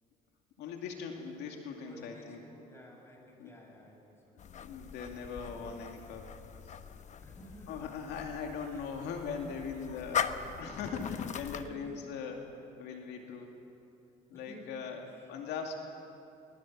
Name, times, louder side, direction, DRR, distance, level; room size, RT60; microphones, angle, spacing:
voice 1, 0.6-2.4 3.4-3.5 4.4-6.3 6.6-6.7 7.7-13.5 14.3-15.8, left 5 dB, 85° left, 2 dB, 2.3 m, -40 dB
voice 2, 1.8-4.3 7.2-7.8 11.6-12.0 14.3-14.7 15.0-15.1, equal, 15° left, 1 dB, 6.5 m, -54 dB
sound 1, 4.4-11.7, left 7 dB, 45° left, 1.0 m, -40 dB
24.0 x 20.5 x 7.4 m, 2.9 s
cardioid pair, 110°, 17 cm